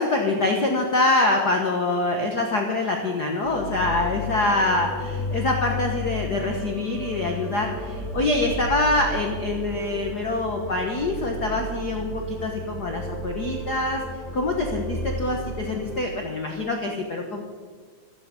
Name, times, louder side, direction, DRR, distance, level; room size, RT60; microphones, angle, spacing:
voice 1, 0.0-4.9 5.3-14.0 14.3-17.4, left 2 dB, 50° left, 2 dB, 1.3 m, -25 dB
sound 1, 3.4-16.0, equal, ahead, 1.7 m, -32 dB
15.5 x 14.0 x 5.3 m, 1.5 s
omnidirectional pair, 3.5 m